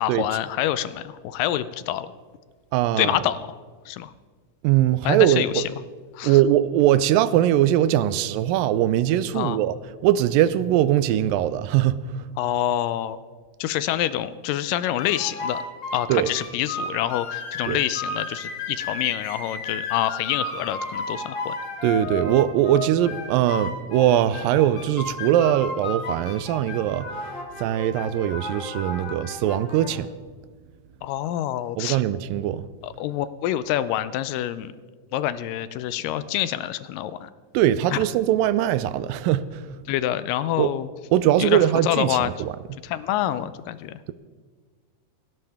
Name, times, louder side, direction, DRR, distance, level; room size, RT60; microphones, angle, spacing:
voice 1, 0.0-2.1 3.0-3.6 3.9-4.1 5.0-5.7 6.1-6.4 9.3-9.6 12.4-13.2 13.6-15.6 15.9-21.6 31.0-32.0 32.8-34.7 35.1-37.3 37.9-38.0 39.9-40.9 41.4-42.3 42.8-44.0, left 12 dB, 80° left, 2.2 m, -26 dB
voice 2, 2.7-3.2 4.6-5.6 6.2-9.8 10.0-12.3 16.1-16.3 17.7-17.8 21.8-27.1 27.6-30.1 31.8-32.7 37.5-39.6 40.6-40.7 41.1-42.5, right 12 dB, 85° right, 2.3 m, -21 dB
sound 1, 15.0-29.9, left 3 dB, 45° left, 3.5 m, -33 dB
29.0 x 11.0 x 3.5 m
omnidirectional pair, 4.0 m